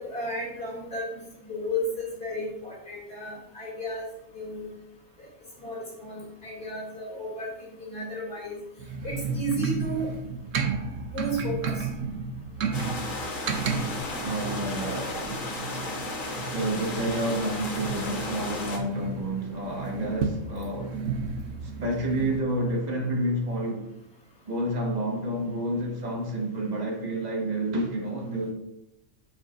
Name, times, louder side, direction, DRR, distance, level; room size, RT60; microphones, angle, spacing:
voice 1, 0.0-4.1 4.3-4.7 5.2-5.3 5.6-8.6 9.0-10.1 11.1-11.9, equal, 50° left, 3.3 m, -33 dB
sound 1, 8.8-22.4, right 5 dB, 75° right, 1.1 m, -33 dB
sound 2, 12.7-18.8, left 2 dB, 85° left, 1.8 m, -34 dB
voice 2, 14.2-15.4 16.5-21.0 21.6-23.9 24.4-28.5, right 1 dB, 35° right, 1.6 m, -29 dB
8.2 x 7.6 x 2.6 m
omnidirectional pair, 1.3 m